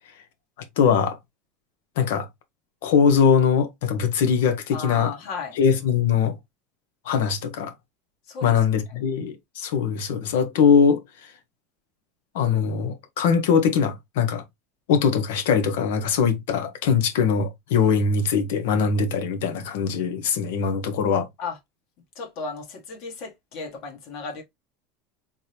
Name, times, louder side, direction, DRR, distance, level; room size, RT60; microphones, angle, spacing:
voice 1, 0.8-1.2 2.0-2.3 2.8-5.1 5.6-6.4 7.0-7.7 8.4-11.0 12.3-14.4 14.9-21.3, left 6 dB, 85° left, 0.9 m, -21 dB
voice 2, 4.7-5.6 8.3-8.6 8.9-9.0 21.4-21.6 22.1-24.4, left 4 dB, 55° left, 1.6 m, -35 dB
3.7 x 2.8 x 3.2 m
supercardioid pair, 135°, 0 cm